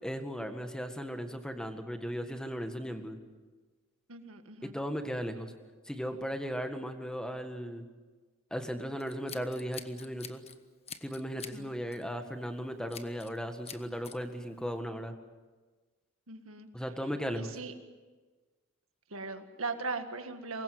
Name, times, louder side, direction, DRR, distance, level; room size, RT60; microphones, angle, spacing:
voice 1, 0.0-3.2 4.6-5.5 5.9-7.9 8.5-10.4 11.0-15.2 16.7-17.5, equal, 5° left, 6 dB, 1.8 m, -36 dB
voice 2, 4.1-4.7 11.5-11.7 16.3-16.7 17.4-17.7 19.1-20.6, right 3 dB, 75° right, 7 dB, 1.8 m, -39 dB
Scissors, 9.0-10.6 10.9-11.6 11.9-12.1 12.9-13.4 13.7-14.2, left 7 dB, 30° left, 1.1 m, -46 dB
24.5 x 21.0 x 7.8 m, 1.3 s
head